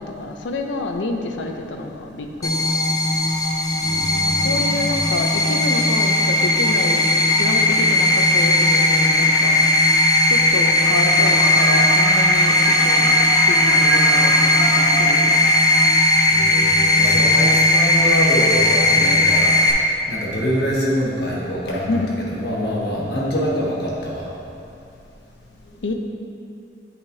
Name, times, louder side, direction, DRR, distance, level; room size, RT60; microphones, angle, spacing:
voice 1, 0.0-2.7 4.4-9.6 10.3-15.5 21.9-22.1 25.8-25.9, left 2 dB, 85° left, 4 dB, 0.5 m, -28 dB
sound 1, 2.4-19.7, left 2 dB, 20° left, 0.4 m, -17 dB
voice 2, 3.8-4.9 16.3-24.3, equal, 60° left, -5 dB, 1.3 m, -25 dB
sound 2, 10.8-15.9, right 7 dB, 85° right, 0.3 m, -26 dB
8.5 x 4.9 x 2.7 m, 2.7 s
head